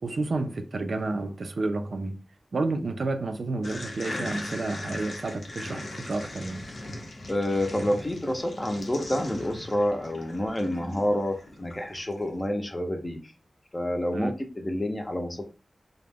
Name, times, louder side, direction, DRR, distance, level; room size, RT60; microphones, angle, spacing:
voice 1, 0.0-2.2 2.5-6.7 14.1-14.3, right 3 dB, 60° right, 0.3 m, -30 dB
sound 1, 3.6-12.2, left 1 dB, 60° left, 0.6 m, -39 dB
voice 2, 7.3-13.2 13.7-15.4, left 1 dB, 20° left, 0.5 m, -28 dB
2.3 x 2.0 x 3.3 m
wide cardioid pair, 100°, 0 cm